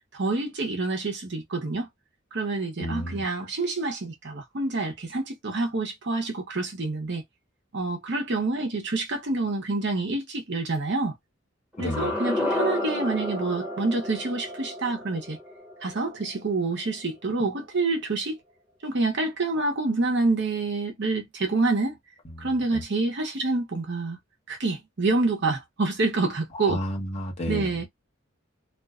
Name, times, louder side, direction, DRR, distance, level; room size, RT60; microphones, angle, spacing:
voice 1, 0.1-1.9 2.3-7.2 7.7-11.1 11.8-15.4 15.8-18.4 18.8-22.0 22.4-24.2 24.5-26.8 27.5-27.9, right 3 dB, 60° right, 0.8 m, -27 dB
voice 2, 2.8-3.2 11.8-12.1 26.7-27.6, equal, 35° left, 0.8 m, -30 dB
sound 1, 11.7-16.7, left 1 dB, 5° right, 0.9 m, -31 dB
2.5 x 2.2 x 2.4 m
head